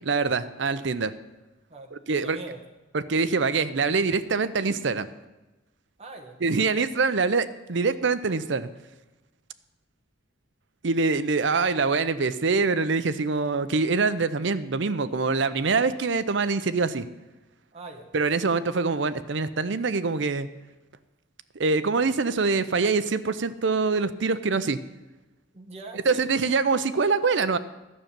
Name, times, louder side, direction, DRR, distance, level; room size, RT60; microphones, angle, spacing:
voice 1, 0.0-1.1 2.1-2.4 2.9-5.1 6.4-8.7 10.8-17.1 18.1-20.5 21.5-24.8 26.1-27.6, right 4 dB, 65° right, 13 dB, 0.6 m, -24 dB
voice 2, 1.7-2.6 6.0-6.4 17.7-18.1 25.5-26.3, right 2 dB, 30° right, 2 dB, 1.4 m, -41 dB
12.0 x 6.6 x 8.9 m, 1.1 s
head